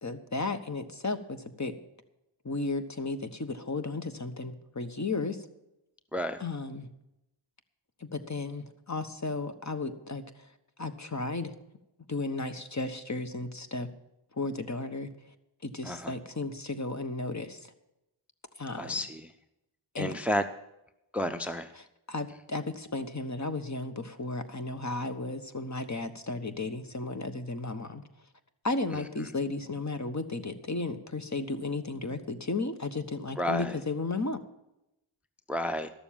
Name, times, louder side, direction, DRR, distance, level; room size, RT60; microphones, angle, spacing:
voice 1, 0.0-1.8 2.4-5.5 6.4-6.9 8.0-10.5 10.8-11.5 12.1-13.9 14.3-15.1 15.6-17.7 18.6-19.0 19.9-20.1 22.1-28.0 28.6-34.4, left 3 dB, 35° left, 8 dB, 1.3 m, -34 dB
voice 2, 15.8-16.1 18.8-19.3 20.0-20.4 21.1-21.7 28.9-29.0 33.4-33.8 35.5-35.9, equal, 5° right, 10 dB, 0.7 m, -31 dB
12.5 x 6.9 x 8.8 m, 0.88 s
cardioid pair, 45°, 49 cm